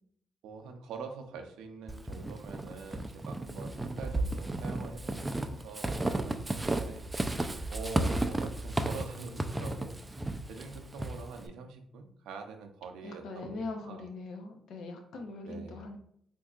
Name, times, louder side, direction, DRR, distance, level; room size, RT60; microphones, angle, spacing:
voice 1, 0.4-7.1 7.7-10.1 10.5-14.1 15.5-15.9, right 5 dB, 85° right, 6 dB, 0.5 m, -45 dB
Walk footsteps / Squeak, 1.9-11.5, right 2 dB, 15° right, 0.3 m, -34 dB
voice 2, 13.0-16.0, left 3 dB, 75° left, 4 dB, 0.7 m, -41 dB
4.4 x 2.6 x 2.4 m, 0.69 s
cardioid pair, 90°, 0 cm